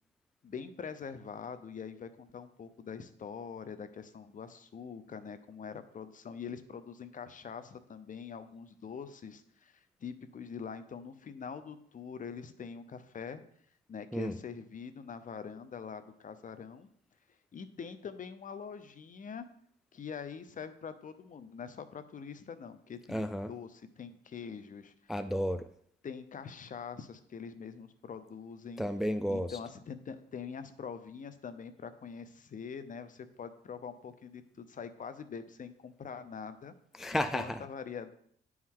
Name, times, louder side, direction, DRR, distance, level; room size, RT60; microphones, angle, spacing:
voice 1, 0.4-13.4 13.9-16.9 17.5-19.5 19.9-25.1 26.0-28.8 29.3-36.7 37.1-38.1, left 6 dB, 40° left, 11 dB, 0.7 m, -44 dB
voice 2, 23.1-23.5 25.1-25.7 28.8-29.6 36.9-37.7, equal, ahead, 10 dB, 0.3 m, -32 dB
9.6 x 4.7 x 3.7 m, 0.66 s
cardioid pair, 90°, 20 cm